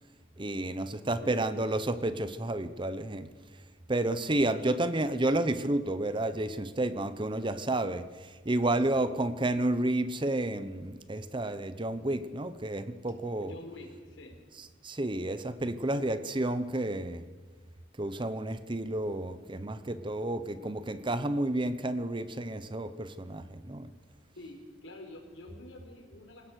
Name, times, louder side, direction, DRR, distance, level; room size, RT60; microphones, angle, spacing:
voice 1, 0.4-3.3 3.9-13.5 14.8-17.3 18.0-23.9, right 1 dB, 25° right, 12 dB, 0.9 m, -31 dB
voice 2, 1.2-1.7 4.7-4.9 9.0-9.2 13.4-14.4 24.3-26.5, left 1 dB, 80° left, 3 dB, 4.8 m, -47 dB
27.5 x 17.0 x 6.5 m, 1.4 s
head